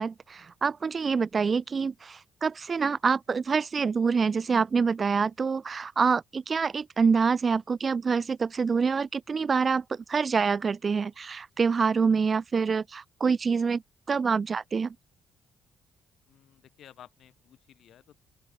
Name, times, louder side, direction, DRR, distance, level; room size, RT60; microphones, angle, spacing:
voice 1, 0.0-13.8 14.1-14.9, right 5 dB, 40° right, 0.3 m, -26 dB
voice 2, 16.3-18.1, left 10 dB, 70° left, 2.6 m, -54 dB
open air
cardioid pair, 90°, 0 cm